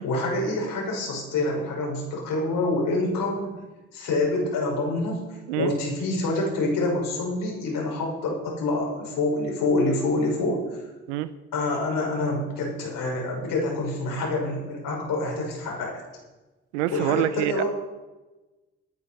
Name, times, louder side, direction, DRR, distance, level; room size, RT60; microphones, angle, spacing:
voice 1, 0.0-3.5 3.9-5.3 5.6-10.6 11.5-16.0 16.9-17.7, left 2 dB, 70° left, -1 dB, 6.1 m, -26 dB
voice 2, 16.7-17.6, right 14 dB, 80° right, 15 dB, 0.7 m, -25 dB
19.0 x 10.5 x 5.9 m, 1.1 s
hypercardioid pair, 45°, 35 cm